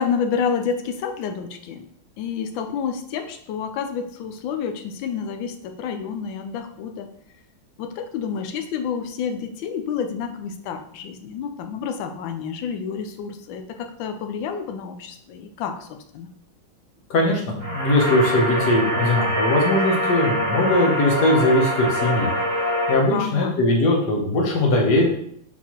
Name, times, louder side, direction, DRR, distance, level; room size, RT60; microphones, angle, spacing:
voice 1, 0.0-1.9 2.2-7.1 7.8-16.3 23.1-23.6, left 6 dB, 80° left, 7 dB, 1.3 m, -29 dB
voice 2, 17.1-22.3 22.9-25.1, left 1 dB, 60° left, 0 dB, 1.5 m, -20 dB
sound 1, 17.6-22.9, equal, 15° left, 0.5 m, -24 dB
4.2 x 4.1 x 2.9 m, 0.66 s
omnidirectional pair, 2.2 m